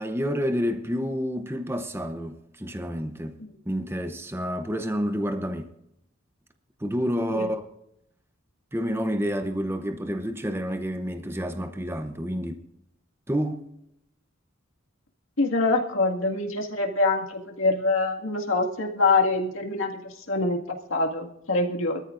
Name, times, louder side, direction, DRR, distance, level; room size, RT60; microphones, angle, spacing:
voice 1, 0.0-3.4 3.7-5.7 6.8-7.7 8.7-12.6 13.3-13.7, equal, 10° right, 0.8 m, -29 dB
voice 2, 15.4-22.0, left 3 dB, 70° left, 2.0 m, -25 dB
22.5 x 13.5 x 2.6 m
head